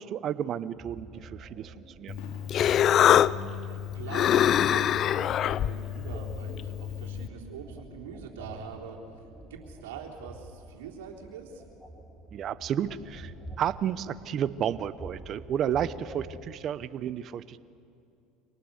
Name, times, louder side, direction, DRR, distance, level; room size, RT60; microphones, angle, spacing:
voice 1, 0.0-2.2 12.3-17.6, right 9 dB, 50° right, 16 dB, 0.9 m, -32 dB
sound 1, 0.7-16.5, right 1 dB, 10° left, 5.5 m, -47 dB
Fireworks, 1.1-1.3 1.7-1.8 2.2-5.9 6.3-7.1, left 3 dB, 70° left, 2.9 m, -53 dB
Human voice, 2.1-7.3, left 10 dB, 50° left, 0.5 m, -25 dB
voice 2, 2.8-9.0 9.4-11.6, right 6 dB, 85° right, 0 dB, 3.7 m, -43 dB
26.0 x 19.0 x 8.3 m, 2.5 s
hypercardioid pair, 80°, 0 cm